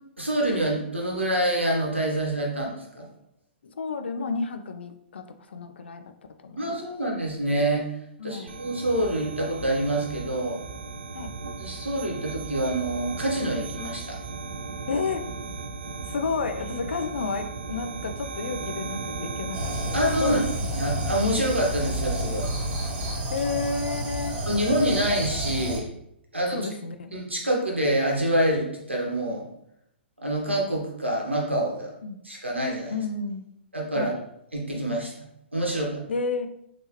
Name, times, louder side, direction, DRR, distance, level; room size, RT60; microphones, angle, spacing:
voice 1, 0.2-3.1 6.6-7.8 8.2-10.6 11.6-14.2 19.9-20.4 20.8-22.5 24.5-25.9 26.3-26.6 27.1-29.4 30.2-31.9 32.2-33.0 33.7-34.1 34.5-35.2 35.5-36.0, right 1 dB, 90° right, -2 dB, 1.0 m, -26 dB
voice 2, 3.6-6.0 6.4-6.8 8.2-8.6 11.1-11.3 14.9-15.2 16.1-20.4 23.3-24.4 26.5-27.1 32.0-32.2 32.9-33.5 33.9-34.2 36.1-36.5, left 4 dB, 70° left, 8 dB, 0.4 m, -31 dB
sound 1, 8.5-23.2, right 4 dB, 70° right, 0.3 m, -36 dB
sound 2, 19.5-25.8, equal, 25° right, 0.9 m, -30 dB
3.5 x 2.9 x 2.9 m, 0.77 s
figure-of-eight pair, 115°, 6 cm